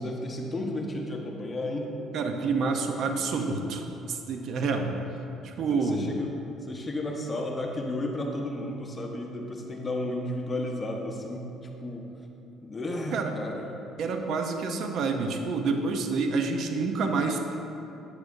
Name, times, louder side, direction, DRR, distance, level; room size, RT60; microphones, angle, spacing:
voice 1, 0.0-1.9 5.7-6.3 6.6-12.0 12.6-13.7, left 1 dB, 25° left, 1 dB, 1.0 m, -33 dB
voice 2, 2.1-4.9 5.4-6.1 13.1-13.3 14.0-17.6, right 4 dB, 65° right, 5 dB, 0.6 m, -28 dB
8.3 x 7.7 x 2.6 m, 2.9 s
cardioid pair, 90°, 0 cm